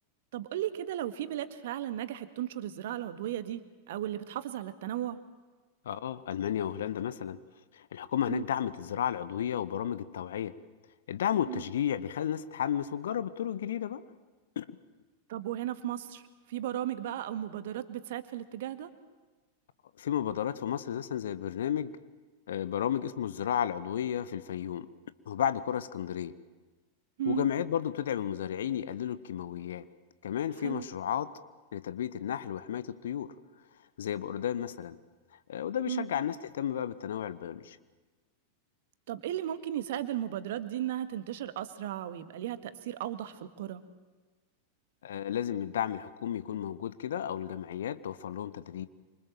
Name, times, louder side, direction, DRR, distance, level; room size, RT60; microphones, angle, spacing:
voice 1, 0.3-3.6 3.9-5.2 8.3-8.4 11.5-11.6 15.3-16.2 16.5-18.9 27.2-27.5 30.6-30.9 35.9-36.1 39.1-43.8, right 12 dB, 55° right, 11 dB, 1.8 m, -35 dB
voice 2, 5.8-7.4 7.7-10.5 11.1-14.0 14.5-14.6 20.0-21.9 22.5-24.9 25.3-26.3 27.2-29.8 30.2-31.3 31.7-33.3 34.0-35.0 35.5-37.8 45.0-48.9, left 9 dB, 60° left, 15 dB, 1.3 m, -33 dB
27.5 x 25.5 x 7.6 m, 1.3 s
figure-of-eight pair, 90°, 0 cm